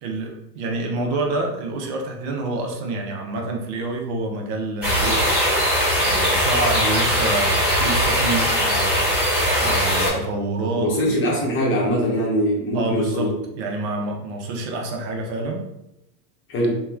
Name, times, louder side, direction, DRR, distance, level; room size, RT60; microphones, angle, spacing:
voice 1, 0.0-5.1 6.0-9.1 9.6-10.9 12.7-15.7, right 2 dB, 45° right, 1 dB, 0.7 m, -27 dB
sound 1, 4.8-10.1, equal, 5° right, 1.3 m, -20 dB
voice 2, 10.7-13.3 16.5-16.8, equal, 25° left, -2 dB, 0.8 m, -22 dB
3.0 x 2.2 x 2.3 m, 0.88 s
hypercardioid pair, 100°, 49 cm